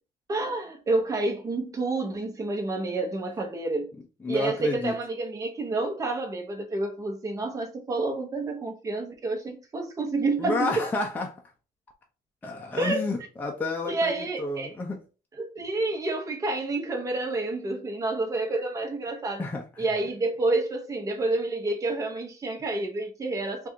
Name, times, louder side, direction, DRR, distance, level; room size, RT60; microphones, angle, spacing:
voice 1, 0.3-3.9 4.3-10.7 12.8-13.0 13.9-14.7 15.4-19.4 19.8-23.7, right 2 dB, 20° right, 1.0 m, -29 dB
voice 2, 4.2-4.9 10.4-11.4 12.4-15.0 19.4-19.6, left 3 dB, 10° left, 0.6 m, -30 dB
3.5 x 2.5 x 4.3 m
cardioid pair, 155°, 15 cm